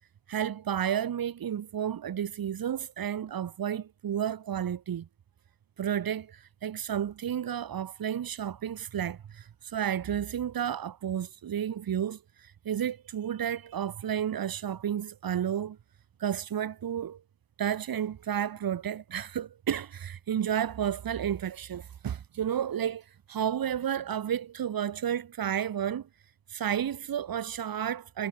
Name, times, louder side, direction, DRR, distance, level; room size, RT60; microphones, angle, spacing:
voice 1, 0.3-5.1 5.8-15.8 16.2-17.2 17.6-26.1 26.5-28.3, right 9 dB, 70° right, 1.1 m, -32 dB
wide cardioid pair, 110°, 36 cm